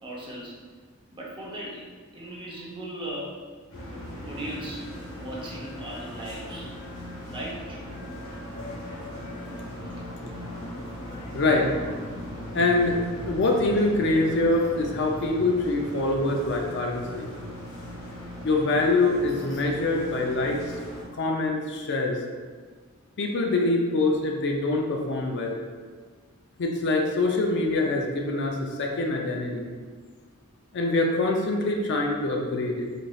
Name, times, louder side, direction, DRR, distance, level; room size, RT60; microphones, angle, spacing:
voice 1, 0.0-0.6 1.1-3.4 4.3-4.9 5.2-6.7 7.3-7.8 9.9-10.0, right 1 dB, 25° right, -5 dB, 0.7 m, -37 dB
sound 1, 3.7-21.0, equal, 70° left, 1.1 m, -38 dB
voice 2, 11.3-11.7 12.5-13.0 13.3-17.3 18.4-20.6 21.2-22.2 23.2-25.6 26.6-29.7 30.7-32.9, left 2 dB, 55° left, 1 dB, 0.4 m, -24 dB
4.0 x 3.0 x 2.3 m, 1.5 s
head